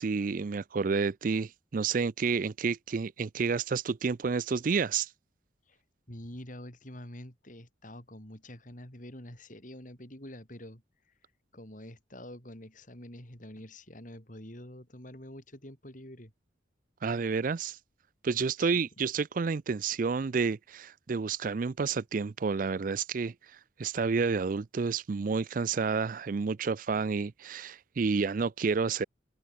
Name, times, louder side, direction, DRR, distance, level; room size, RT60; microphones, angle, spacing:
voice 1, 0.0-5.1 17.0-17.8 18.2-23.3 23.8-29.0, right 5 dB, 45° right, 0.4 m, -30 dB
voice 2, 6.1-10.8 11.5-16.3 18.6-18.8, left 1 dB, 45° left, 6.2 m, -46 dB
open air
head